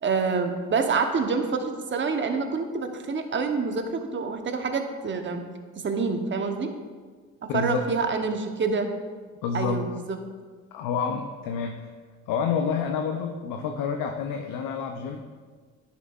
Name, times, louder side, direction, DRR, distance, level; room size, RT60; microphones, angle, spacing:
voice 1, 0.0-5.4 5.8-6.7 7.5-8.9 9.5-10.2, right 4 dB, 35° right, 6 dB, 0.9 m, -27 dB
voice 2, 7.5-7.9 9.4-9.8 10.7-11.9 12.3-15.2, left 6 dB, 75° left, 4 dB, 0.6 m, -28 dB
10.5 x 5.7 x 2.4 m, 1.5 s
supercardioid pair, 55°, 33 cm